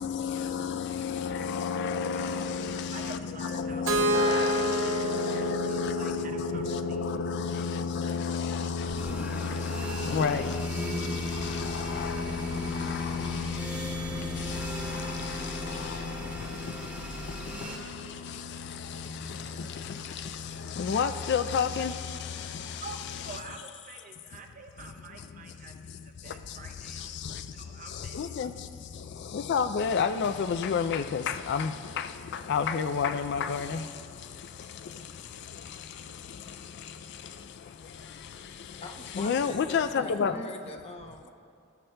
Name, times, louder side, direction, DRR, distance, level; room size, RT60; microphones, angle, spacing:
voice 1, 0.0-23.4 26.9-27.4 27.9-28.5 29.3-33.9 39.1-40.4, left 6 dB, 55° left, 0.3 m, -31 dB
voice 2, 2.9-3.8 5.7-7.0 7.5-7.6 22.8-28.2, right 4 dB, 40° right, 0.7 m, -47 dB
Keyboard (musical), 3.9-7.8, right 1 dB, 75° right, 1.0 m, -30 dB
Explosion, 8.9-11.6, left 1 dB, 70° left, 0.9 m, -43 dB
sound 1, 9.0-17.8, right 1 dB, 10° right, 1.0 m, -39 dB
voice 3, 23.5-24.0 38.8-41.3, left 1 dB, 30° left, 0.7 m, -43 dB
14.0 x 12.5 x 2.2 m
head